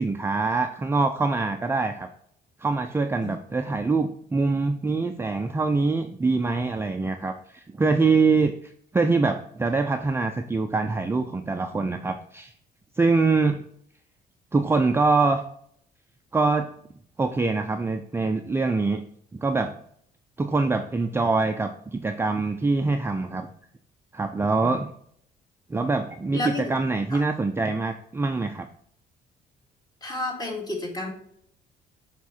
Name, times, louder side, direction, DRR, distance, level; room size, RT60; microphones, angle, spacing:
voice 1, 0.0-2.1 2.6-12.5 13.0-13.6 14.5-15.4 16.3-16.7 17.2-19.0 19.3-19.7 20.4-23.5 24.1-24.9 25.7-28.7, right 3 dB, 15° right, 5 dB, 0.4 m, -24 dB
voice 2, 26.3-26.7 27.1-27.2 30.0-31.1, left 2 dB, 25° left, 0 dB, 2.2 m, -31 dB
7.2 x 3.7 x 4.2 m, 0.66 s
cardioid pair, 110°, 17 cm